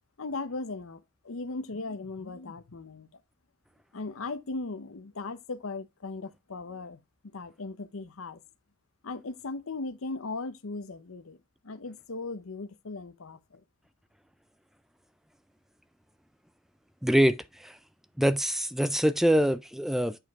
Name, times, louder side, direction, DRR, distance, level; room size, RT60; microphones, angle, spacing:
voice 1, 0.2-3.1 3.9-7.0 7.3-8.4 9.0-11.4 11.6-13.6, left 3 dB, 85° left, 0.8 m, -38 dB
voice 2, 17.0-17.7 18.2-20.2, equal, ahead, 0.3 m, -24 dB
8.0 x 4.6 x 3.5 m
head